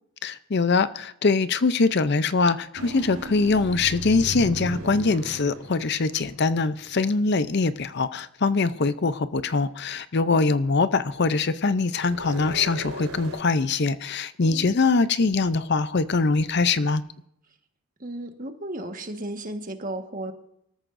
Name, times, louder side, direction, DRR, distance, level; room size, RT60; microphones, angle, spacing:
voice 1, 0.2-17.0, left 4 dB, 50° left, 13 dB, 0.6 m, -23 dB
sound 1, 2.7-7.0 12.0-13.4, right 1 dB, 85° right, 4.1 m, -37 dB
voice 2, 14.4-15.1 18.0-20.3, right 1 dB, 35° right, 5 dB, 1.5 m, -35 dB
24.5 x 14.0 x 2.6 m, 0.76 s
head